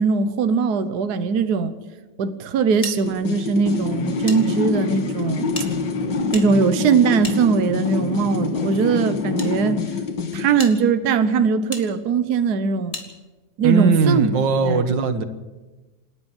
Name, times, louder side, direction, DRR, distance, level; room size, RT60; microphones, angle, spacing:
voice 1, 0.0-1.8 2.2-5.5 6.3-9.8 10.3-13.0 13.6-14.3 14.6-14.9, right 5 dB, 65° right, 10 dB, 1.5 m, -20 dB
sound 1, 2.8-4.4 4.7-4.8 5.5-8.0 8.8-9.5 10.1-10.2 10.6-10.8 11.7-11.9 12.9-13.1, left 2 dB, 20° left, 2.5 m, -36 dB
sound 2, 3.1-10.6, left 4 dB, 75° left, 2.1 m, -25 dB
voice 2, 13.6-15.2, right 5 dB, 85° right, 10 dB, 2.0 m, -19 dB
27.5 x 11.0 x 9.1 m, 1.2 s
omnidirectional pair, 1.9 m